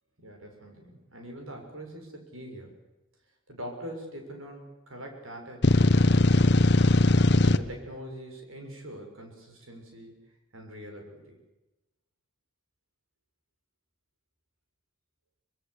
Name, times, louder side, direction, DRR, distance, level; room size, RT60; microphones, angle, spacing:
voice 1, 0.2-2.7 3.5-6.5 7.4-10.1 10.5-11.4, equal, 75° right, 3 dB, 6.6 m, -43 dB
sound 1, 5.6-7.6, left 2 dB, 55° left, 1.0 m, -19 dB
24.5 x 21.5 x 8.2 m, 1.0 s
head